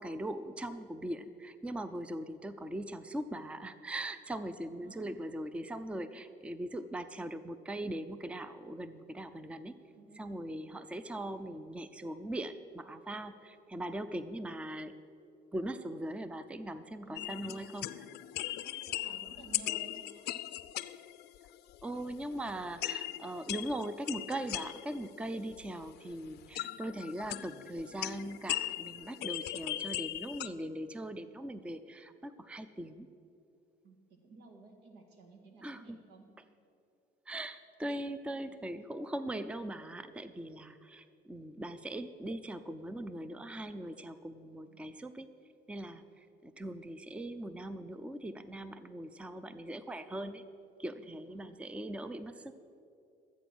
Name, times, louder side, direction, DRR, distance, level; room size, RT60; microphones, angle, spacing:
voice 1, 0.0-9.7 10.2-14.9 15.5-18.0 21.8-33.1 35.6-36.0 37.3-45.3 45.7-46.0 46.4-50.4 50.8-52.5, right 1 dB, 5° right, 12 dB, 0.4 m, -40 dB
voice 2, 4.8-5.2 10.0-10.2 17.0-17.7 18.6-20.1 33.8-36.3 44.7-44.9 51.0-51.6, right 2 dB, 90° right, 3 dB, 1.9 m, -55 dB
sound 1, 17.2-21.8 22.1-25.9 26.4-30.5, left 15 dB, 75° left, 0.5 m, -39 dB
13.0 x 8.3 x 6.0 m, 2.7 s
cardioid pair, 110°, 17 cm